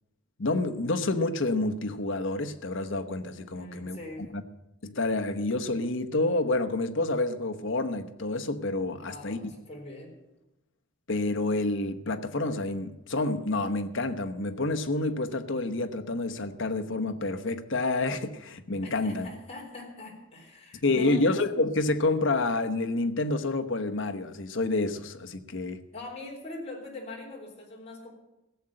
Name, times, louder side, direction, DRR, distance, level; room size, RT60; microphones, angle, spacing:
voice 1, 0.4-4.0 4.8-9.4 11.1-19.3 20.8-25.8, left 2 dB, 55° left, 1.0 m, -28 dB
voice 2, 3.5-4.3 9.0-10.1 18.8-21.3 25.9-28.1, left 2 dB, 30° left, 3.8 m, -42 dB
16.0 x 7.7 x 8.9 m
head